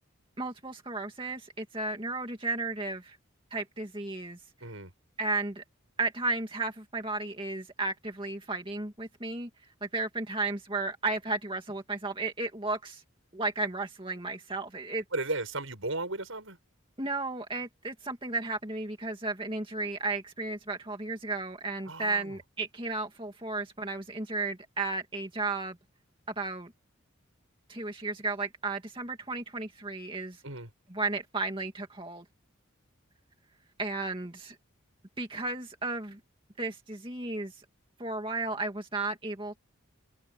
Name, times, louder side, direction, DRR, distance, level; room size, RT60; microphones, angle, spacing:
voice 1, 0.4-3.2 3.5-4.4 5.2-5.6 6.0-9.5 9.8-13.0 13.3-15.0 17.0-25.8 26.3-26.7 27.7-30.4 30.9-32.2 33.8-34.6 35.2-36.2 36.6-37.6 38.0-39.6, right 3 dB, 25° right, 2.3 m, -34 dB
voice 2, 4.6-4.9 15.1-16.6 21.9-22.4 30.4-30.7, right 2 dB, 75° right, 7.8 m, -35 dB
head